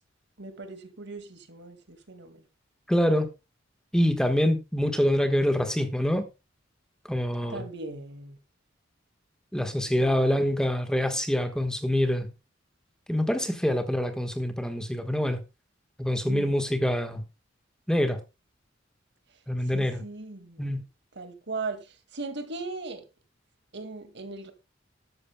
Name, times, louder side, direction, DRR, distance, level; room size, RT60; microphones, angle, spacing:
voice 1, 0.4-2.5 7.5-8.4 10.0-10.3 16.3-16.6 19.7-20.8 21.1-23.0 23.7-24.5, right 3 dB, 60° right, 2.1 m, -38 dB
voice 2, 2.9-3.3 3.9-6.3 7.1-7.6 9.5-12.3 13.1-15.4 16.0-17.2 17.9-18.2 19.5-20.0 20.6-20.8, equal, 5° left, 1.3 m, -25 dB
13.0 x 12.5 x 2.2 m
head